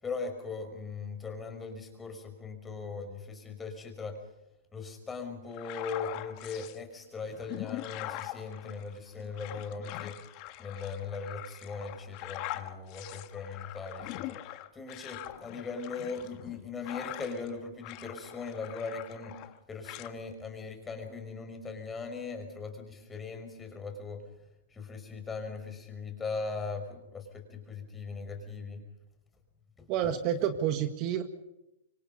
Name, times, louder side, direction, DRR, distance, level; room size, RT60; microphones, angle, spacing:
voice 1, 0.0-4.2 4.7-10.2 10.6-14.4 14.7-19.3 19.7-24.2 24.7-28.8 29.8-29.9, left 4 dB, 15° left, 5 dB, 5.5 m, -39 dB
sound 1, 5.5-6.8 7.3-17.5 17.8-19.6 19.8-20.1, left 16 dB, 45° left, 1.6 m, -42 dB
voice 2, 29.9-31.2, right 10 dB, 40° right, 8 dB, 1.8 m, -29 dB
26.0 x 24.0 x 5.5 m, 0.88 s
hypercardioid pair, 130°, 0 cm